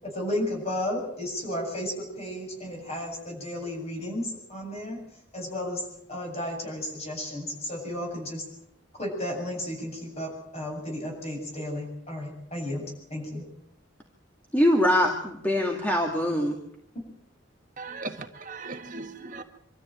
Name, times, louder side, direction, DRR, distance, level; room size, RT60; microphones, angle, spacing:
voice 1, 0.0-5.0 5.3-8.4 9.0-12.8 13.1-13.4 16.9-17.0, left 1 dB, 30° left, 1 dB, 7.8 m, -33 dB
voice 2, 14.5-16.6, left 1 dB, 10° left, 1 dB, 2.1 m, -23 dB
voice 3, 17.8-19.4, right 3 dB, 40° right, 5 dB, 1.5 m, -38 dB
25.5 x 13.5 x 9.0 m, 0.75 s
head